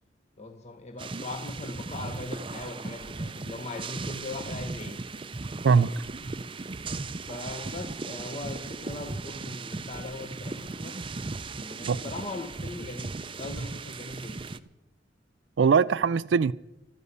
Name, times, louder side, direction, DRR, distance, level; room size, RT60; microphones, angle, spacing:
voice 1, 0.4-5.0 7.3-11.0 11.5-14.4, left 2 dB, 35° left, 0.9 m, -39 dB
sound 1, 1.0-14.6, right 3 dB, 30° right, 0.5 m, -37 dB
voice 2, 5.6-6.0 11.9-12.0 15.6-16.5, right 5 dB, 75° right, 0.4 m, -21 dB
12.5 x 10.5 x 8.2 m
head